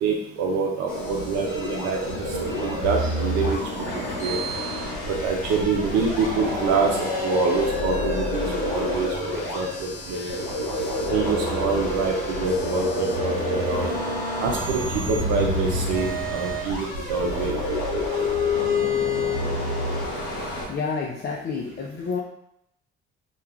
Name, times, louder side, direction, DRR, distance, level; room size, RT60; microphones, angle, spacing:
voice 1, 0.0-2.0 2.6-3.6 3.9-4.4 5.1-10.3 11.1-13.9 14.4-17.6, right 4 dB, 60° right, 0 dB, 0.5 m, -26 dB
sound 1, 0.9-20.7, left 1 dB, 85° left, 0.8 m, -27 dB
voice 2, 20.7-22.2, left 5 dB, 35° left, -3 dB, 0.5 m, -29 dB
2.3 x 2.3 x 3.0 m, 0.76 s
hypercardioid pair, 50°, 31 cm